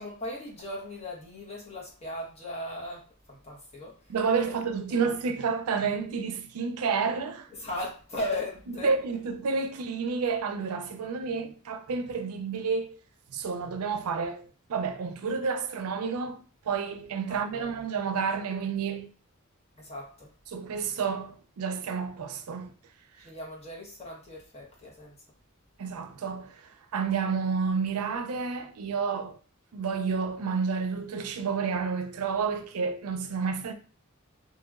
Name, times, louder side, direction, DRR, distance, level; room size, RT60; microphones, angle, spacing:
voice 1, 0.0-4.1 4.5-4.6 4.9-5.1 7.5-8.9 11.0-11.4 17.3-17.8 19.8-20.3 23.2-25.2, left 1 dB, 30° left, 1.0 m, -38 dB
voice 2, 4.1-7.5 8.8-13.0 13.3-19.1 20.5-22.7 25.8-29.4 29.7-33.7, right 5 dB, 85° right, 0.4 m, -30 dB
2.8 x 2.8 x 2.4 m
head